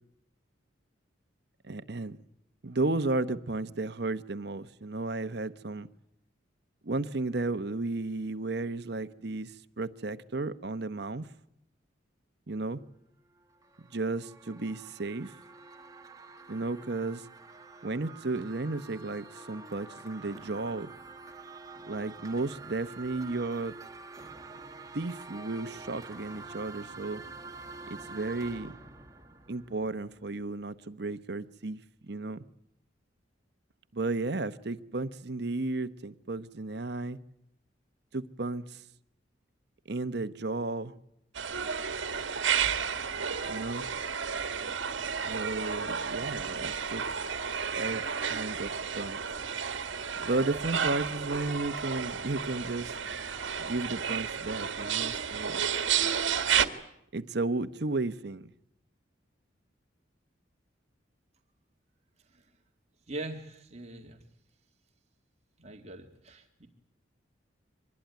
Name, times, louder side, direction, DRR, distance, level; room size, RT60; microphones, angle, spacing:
voice 1, 1.6-2.2 2.6-5.9 6.8-11.3 12.5-12.8 13.9-15.3 16.5-17.3 17.8-20.9 21.8-23.7 24.9-27.2 27.9-28.8 29.5-32.4 33.9-37.2 38.1-38.8 39.9-40.9 43.5-43.9 45.3-47.2 47.8-49.4 50.2-52.9 53.6-55.6 57.1-58.5, right 2 dB, 55° right, 1.0 m, -33 dB
sound 1, 13.4-30.3, right 3 dB, 20° right, 1.3 m, -47 dB
sound 2, 41.3-56.7, right 7 dB, 75° right, 1.6 m, -32 dB
voice 2, 63.1-64.2 65.6-66.7, right 2 dB, 35° right, 2.1 m, -42 dB
24.5 x 21.0 x 9.4 m
head